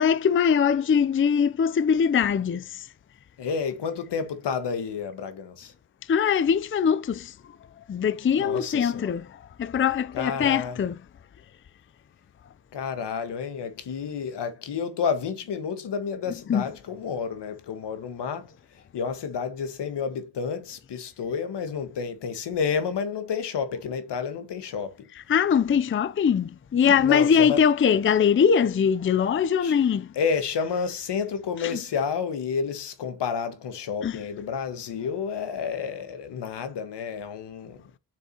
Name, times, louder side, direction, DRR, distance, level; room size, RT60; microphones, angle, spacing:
voice 1, 0.0-2.9 6.1-7.4 7.8-11.0 16.5-16.6 25.3-30.1 31.6-31.8 34.0-34.2, left 7 dB, 30° left, 0.5 m, -22 dB
voice 2, 3.4-5.7 8.4-9.1 10.1-10.8 12.7-18.5 18.9-25.1 27.0-27.6 29.6-29.8 30.1-37.8, left 6 dB, 85° left, 1.6 m, -30 dB
7.9 x 6.7 x 2.9 m
cardioid pair, 105°, 40 cm